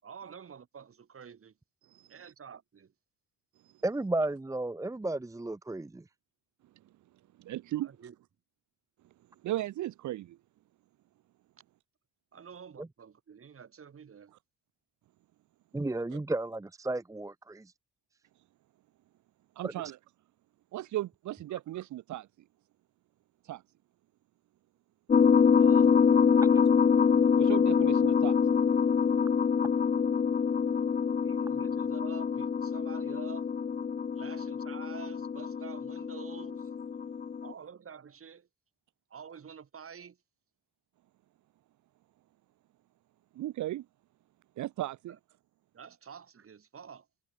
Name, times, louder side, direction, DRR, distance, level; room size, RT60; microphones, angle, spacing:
voice 1, 0.0-1.5 2.1-2.9 7.8-8.1 12.3-14.3 25.5-26.0 31.2-33.5 34.1-36.7 37.4-38.5 39.1-40.2 45.7-47.1, right 7 dB, 45° right, 6.8 m, -48 dB
voice 2, 1.8-2.3 3.6-3.8 7.4-7.9 9.4-10.4 19.6-20.0 20.7-22.3 23.4-23.6 27.3-28.4 43.3-43.9 44.6-45.2, right 14 dB, 70° right, 1.0 m, -36 dB
voice 3, 3.8-6.0 12.8-12.9 15.7-17.7 19.6-19.7 26.4-26.6, right 2 dB, 10° right, 0.8 m, -33 dB
sound 1, 25.1-37.5, left 6 dB, 30° left, 0.6 m, -25 dB
cardioid pair, 90°, 30 cm